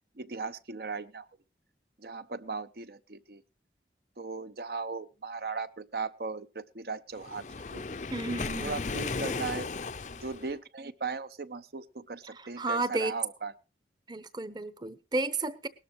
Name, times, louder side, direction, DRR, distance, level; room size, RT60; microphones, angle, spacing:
voice 1, 0.2-1.3 2.0-3.4 4.2-7.5 7.7-8.0 8.6-9.7 10.1-13.5, right 4 dB, 60° right, 13 dB, 0.8 m, -37 dB
Waves surf, 7.2-10.5, left 4 dB, 45° left, 0.6 m, -35 dB
voice 2, 8.1-8.8 12.3-13.1 14.1-15.7, right 2 dB, 25° right, 15 dB, 0.9 m, -32 dB
19.5 x 12.5 x 3.0 m, 0.30 s
head